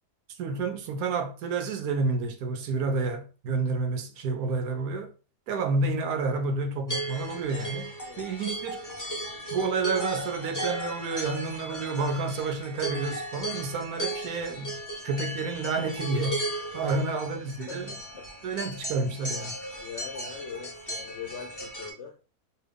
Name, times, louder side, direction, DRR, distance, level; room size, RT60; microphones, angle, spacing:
voice 1, 0.4-5.1 5.5-8.8 9.5-17.9 18.4-19.6, right 3 dB, 70° right, 1.0 m, -30 dB
sound 1, 6.9-21.9, right 1 dB, 20° left, 0.5 m, -36 dB
voice 2, 16.8-17.2 17.7-18.6 19.8-22.2, left 7 dB, 70° left, 0.7 m, -42 dB
3.0 x 2.2 x 3.4 m
omnidirectional pair, 1.7 m